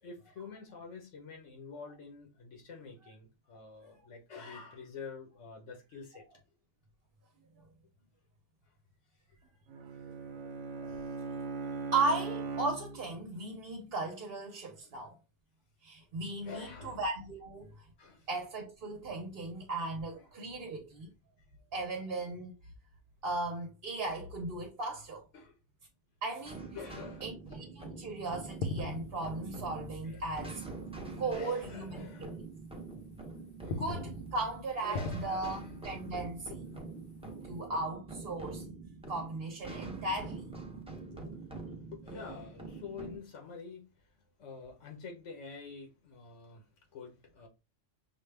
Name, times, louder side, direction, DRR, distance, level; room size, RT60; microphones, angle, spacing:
voice 1, 0.0-6.2 8.7-8.8 10.9-11.0 14.8-14.9 16.2-17.1 18.0-18.3 20.1-20.3 24.2-24.3 25.3-25.6 26.7-27.6 30.0-30.4 31.2-32.4 33.6-34.0 34.7-35.7 36.5-37.0 41.1-47.5, left 5 dB, 90° left, 1.3 m, -48 dB
Bowed string instrument, 9.7-13.3, right 5 dB, 85° right, 1.0 m, -39 dB
voice 2, 11.9-15.2 15.8-17.7 18.3-21.1 21.7-22.5 23.2-25.2 26.2-26.8 27.2-30.6 31.2-32.4 33.8-35.6 35.8-36.5 37.4-38.7 39.1-40.4, right 2 dB, 55° right, 0.9 m, -36 dB
sound 1, 26.5-43.2, right 3 dB, 5° right, 0.7 m, -45 dB
sound 2, 28.4-31.4 31.6-31.9 32.4-33.2 33.5-37.7, left 2 dB, 60° left, 0.8 m, -42 dB
5.6 x 2.3 x 3.3 m
omnidirectional pair, 1.2 m